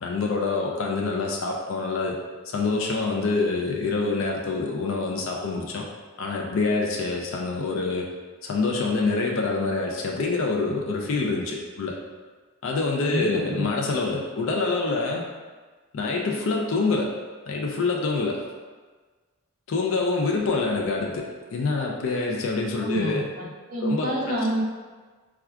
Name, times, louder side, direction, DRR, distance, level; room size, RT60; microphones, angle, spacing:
voice 1, 0.0-2.2 2.5-5.9 6.2-8.1 8.4-11.9 12.6-15.2 15.9-17.1 17.5-18.4 19.7-23.3 23.8-24.1, left 3 dB, 60° left, -1 dB, 0.4 m, -26 dB
voice 2, 13.0-13.6 22.8-24.6, right 1 dB, 40° right, -5 dB, 0.7 m, -28 dB
4.3 x 2.3 x 2.3 m, 1.4 s
head